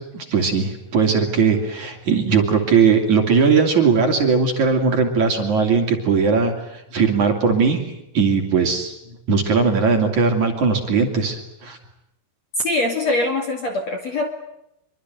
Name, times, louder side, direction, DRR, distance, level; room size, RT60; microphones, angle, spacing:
voice 1, 0.0-7.8 8.1-8.9 9.3-11.8, right 5 dB, 45° right, 3 dB, 3.7 m, -19 dB
voice 2, 12.6-14.3, left 2 dB, 45° left, 4 dB, 2.8 m, -23 dB
25.5 x 24.5 x 9.2 m, 0.83 s
omnidirectional pair, 5.5 m